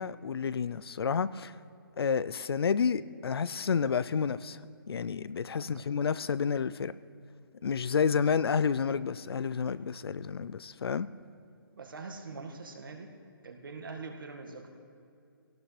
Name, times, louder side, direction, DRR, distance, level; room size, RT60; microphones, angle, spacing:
voice 1, 0.0-1.5 2.0-4.6 4.9-6.9 7.6-11.1, left 6 dB, 90° left, 0.5 m, -30 dB
voice 2, 5.6-5.9 11.7-13.1 13.4-14.7, right 4 dB, 60° right, 1.8 m, -43 dB
21.0 x 17.5 x 3.3 m
hypercardioid pair, 175°, 12 cm